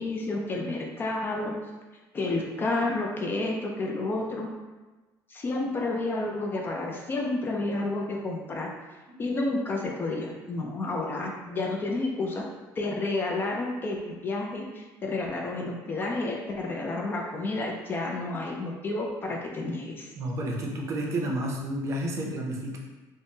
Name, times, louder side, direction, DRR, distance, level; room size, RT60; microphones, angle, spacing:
voice 1, 0.0-1.6 2.1-4.5 5.3-8.7 9.2-12.5 12.8-20.1, left 2 dB, 25° left, 0 dB, 0.3 m, -30 dB
voice 2, 20.2-22.8, right 1 dB, 40° right, -1 dB, 0.5 m, -31 dB
3.4 x 2.0 x 2.7 m, 1.2 s
cardioid pair, 135°, 8 cm